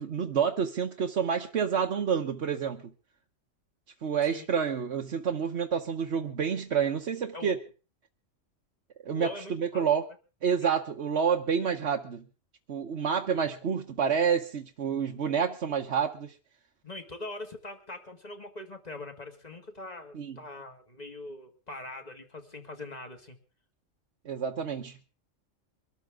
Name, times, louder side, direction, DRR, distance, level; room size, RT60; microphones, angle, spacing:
voice 1, 0.0-2.9 4.0-7.6 9.0-10.1 10.4-12.2 12.7-16.3 20.1-20.4 24.2-25.0, right 7 dB, 60° right, 2 dB, 1.3 m, -28 dB
voice 2, 9.1-9.8 10.6-10.7 16.8-23.4, left 2 dB, 30° left, 5 dB, 2.2 m, -42 dB
24.0 x 13.0 x 3.7 m, 0.35 s
omnidirectional pair, 1.3 m